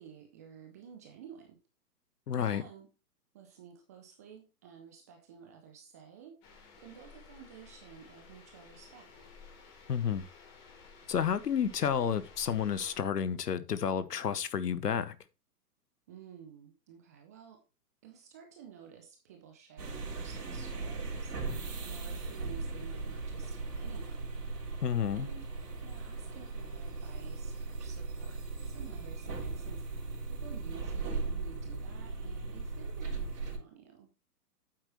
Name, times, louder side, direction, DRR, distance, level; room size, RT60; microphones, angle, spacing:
voice 1, 0.0-1.6 2.3-2.9 3.3-6.4 6.8-9.1 16.1-17.6 18.0-24.3 25.1-25.5 25.8-34.1, right 7 dB, 10° right, 0.4 m, -52 dB
voice 2, 2.3-2.6 9.9-10.2 11.1-15.1 24.8-25.3, left 8 dB, 75° left, 1.0 m, -30 dB
sound 1, 6.4-13.0, left 5 dB, 30° left, 3.3 m, -55 dB
sound 2, 19.8-33.6, right 3 dB, 70° right, 3.6 m, -38 dB
9.0 x 7.7 x 3.0 m
figure-of-eight pair, 125°, 48 cm